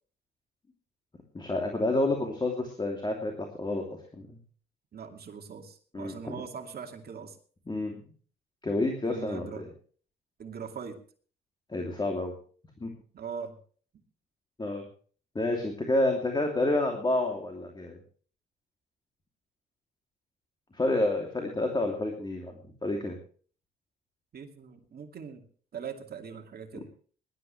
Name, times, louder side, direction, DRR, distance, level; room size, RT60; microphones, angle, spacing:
voice 1, 1.3-3.8 4.2-4.3 5.9-6.4 7.7-8.0 8.6-9.6 11.7-12.3 12.8-12.9 14.6-14.8 15.3-18.0 20.7-23.2, left 2 dB, 20° left, 2 dB, 2.8 m, -29 dB
voice 2, 4.9-7.4 9.0-9.6 10.4-11.0 13.1-13.6 24.3-25.4 25.7-26.9, right 6 dB, 50° right, 4 dB, 2.4 m, -41 dB
19.5 x 12.0 x 3.3 m, 0.42 s
cardioid pair, 90°, 20 cm